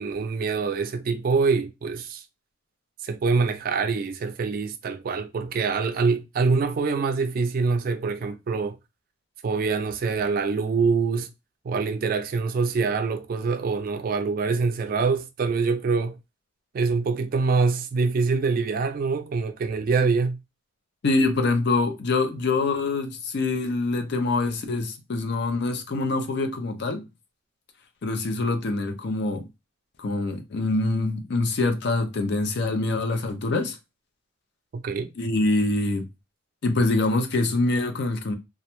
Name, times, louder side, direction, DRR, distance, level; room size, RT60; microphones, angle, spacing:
voice 1, 0.0-2.2 3.0-8.8 9.4-11.3 11.6-16.2 16.7-20.4 34.7-35.1, right 4 dB, 45° right, 0.3 m, -25 dB
voice 2, 21.0-27.0 28.0-29.5 30.0-33.8 35.2-36.1 36.6-38.3, left 2 dB, 55° left, 0.4 m, -25 dB
2.4 x 2.1 x 2.9 m
head